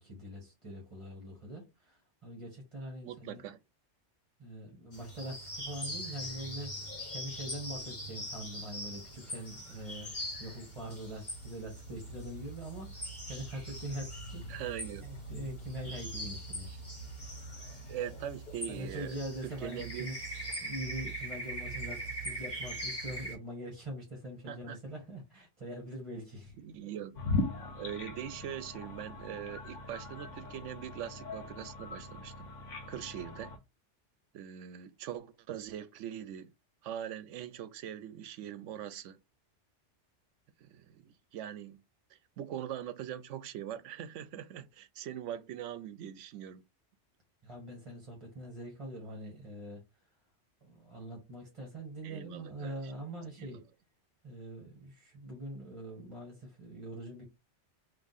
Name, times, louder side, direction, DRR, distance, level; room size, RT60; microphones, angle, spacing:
voice 1, 0.0-3.4 4.4-6.8 7.1-10.1 10.4-14.4 15.0-16.7 18.8-20.1 20.6-26.6 47.4-49.8 50.6-53.6 54.2-57.2, right 1 dB, 25° right, 1.5 m, -43 dB
voice 2, 3.0-3.6 14.5-15.1 16.7-16.8 17.9-20.1 24.5-24.8 26.6-27.2 27.8-32.5 32.9-33.5 34.3-36.5 36.8-39.2 40.6-41.8 42.1-46.6 52.0-52.9 53.4-53.6, right 10 dB, 85° right, 0.9 m, -42 dB
sound 1, 4.9-23.4, right 1 dB, 40° left, 1.6 m, -42 dB
sound 2, 27.1-33.6, left 3 dB, 90° left, 1.2 m, -39 dB
3.6 x 2.7 x 4.0 m
omnidirectional pair, 1.2 m